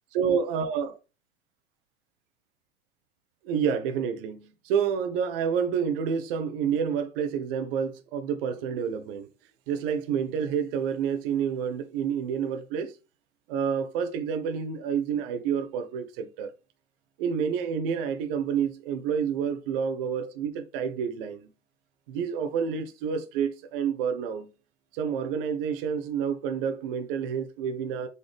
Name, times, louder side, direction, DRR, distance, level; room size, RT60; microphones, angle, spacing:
voice 1, 0.1-1.0 3.4-9.3 9.7-12.9 13.5-16.5 17.2-21.5 22.1-24.5 24.9-28.1, right 7 dB, 55° right, 0.8 m, -29 dB
4.0 x 3.5 x 3.4 m
hypercardioid pair, 95°, 34 cm